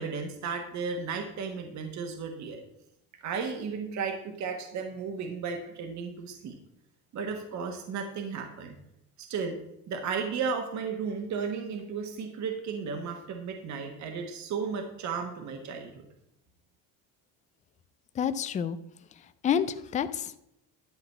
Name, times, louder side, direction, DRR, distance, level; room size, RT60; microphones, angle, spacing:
voice 1, 0.0-2.6 3.2-6.6 7.1-8.7 9.2-9.6 9.9-16.0, right 5 dB, 45° right, 5 dB, 1.3 m, -34 dB
voice 2, 18.2-18.8 19.4-20.4, left 8 dB, 20° left, 13 dB, 0.3 m, -28 dB
11.5 x 4.0 x 7.1 m, 0.81 s
cardioid pair, 150°, 39 cm